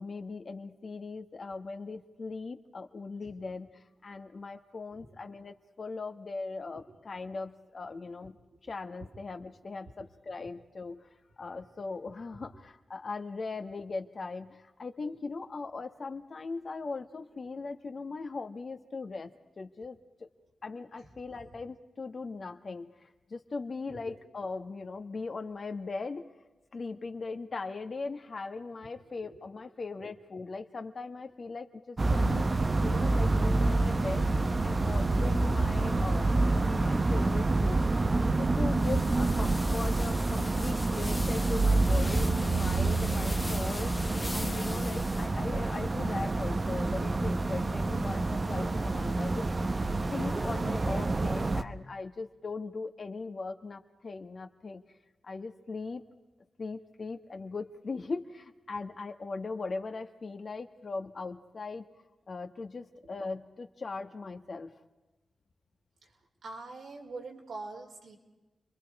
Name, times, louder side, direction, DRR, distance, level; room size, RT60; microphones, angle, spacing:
voice 1, 0.0-3.7 4.0-8.4 8.6-11.1 11.4-19.3 19.6-20.3 20.6-26.3 26.7-34.3 34.6-37.8 38.1-49.5 50.1-54.8 55.2-56.0 56.6-61.8 62.3-64.7, left 3 dB, 55° left, 6 dB, 1.6 m, -39 dB
sound 1, 32.0-51.6, right 2 dB, 40° right, 1.0 m, -28 dB
sound 2, 38.7-45.3, left 1 dB, 20° left, 1.1 m, -41 dB
voice 2, 66.4-68.2, right 3 dB, 85° right, 0 dB, 4.3 m, -43 dB
30.0 x 22.5 x 4.9 m, 1.1 s
cardioid pair, 65°, 0 cm